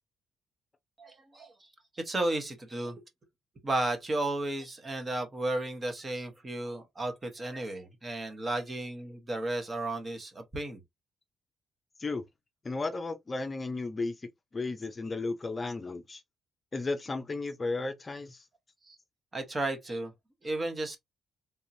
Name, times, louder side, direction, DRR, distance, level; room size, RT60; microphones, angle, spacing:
voice 1, 1.0-1.5 1.9-3.0 3.6-10.8 18.9-19.0 19.3-20.1 20.4-21.0, right 2 dB, 30° right, 1.2 m, -33 dB
voice 2, 12.6-14.2 14.5-16.2 16.7-18.4, left 3 dB, 30° left, 0.6 m, -34 dB
3.6 x 2.9 x 2.7 m
cardioid pair, 90°, 0 cm